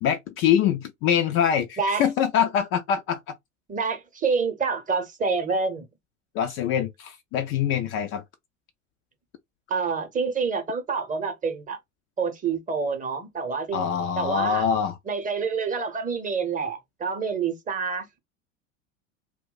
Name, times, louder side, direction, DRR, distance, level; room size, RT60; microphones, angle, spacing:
voice 1, 0.0-3.3 6.3-8.2 13.7-14.9, left 8 dB, 35° left, 0.4 m, -24 dB
voice 2, 3.7-5.9 9.7-11.8 12.2-13.9 14.2-14.6 15.1-18.2, right 5 dB, 20° right, 0.8 m, -27 dB
2.3 x 2.2 x 3.8 m
figure-of-eight pair, 75°, 38 cm